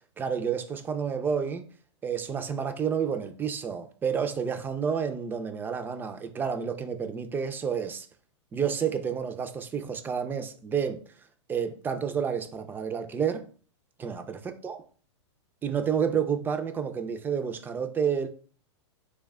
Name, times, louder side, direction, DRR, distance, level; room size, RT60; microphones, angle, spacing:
voice 1, 0.2-1.7 2.0-8.1 8.5-11.0 11.5-13.5 14.0-14.8 15.6-18.3, right 7 dB, 15° right, 0.3 m, -30 dB
3.1 x 2.2 x 3.5 m
hypercardioid pair, 125°, 16 cm